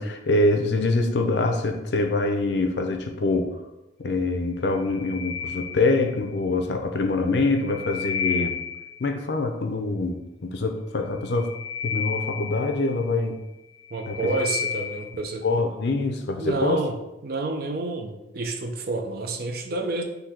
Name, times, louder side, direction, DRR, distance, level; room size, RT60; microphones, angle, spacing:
voice 1, 0.0-3.6 4.0-8.6 9.0-11.6 11.8-13.4 14.1-14.3 15.4-16.8, left 2 dB, 60° left, 5 dB, 0.5 m, -24 dB
sound 1, 4.8-6.4 7.3-9.2 11.1-13.2 13.7-15.3, left 6 dB, 5° left, 0.7 m, -32 dB
voice 2, 13.9-15.4 16.4-17.0 17.2-20.0, right 3 dB, 55° right, 5 dB, 0.5 m, -29 dB
3.9 x 2.7 x 4.3 m, 0.94 s
head